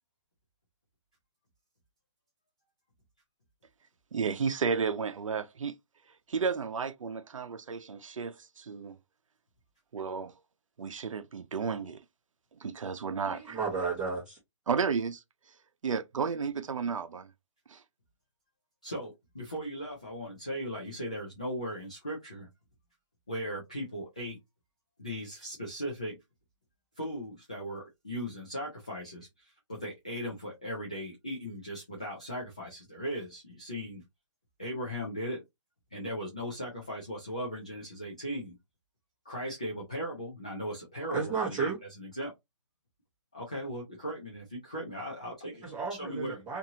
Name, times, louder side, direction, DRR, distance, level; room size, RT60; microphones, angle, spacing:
voice 1, 4.1-5.7 6.3-9.0 9.9-10.3 10.8-12.0 12.5-13.6 14.7-15.2 15.8-17.3 17.7-17.8, right 5 dB, 90° right, 0.6 m, -32 dB
voice 2, 13.3-14.4 41.1-41.8 45.6-46.6, right 5 dB, 5° right, 1.0 m, -33 dB
voice 3, 18.8-22.5 23.3-24.4 25.0-26.2 27.0-34.0 34.6-35.4 35.9-38.5 39.3-42.3 43.3-45.6 46.0-46.4, equal, 15° left, 0.3 m, -38 dB
2.7 x 2.6 x 2.7 m
hypercardioid pair, 175°, 16 cm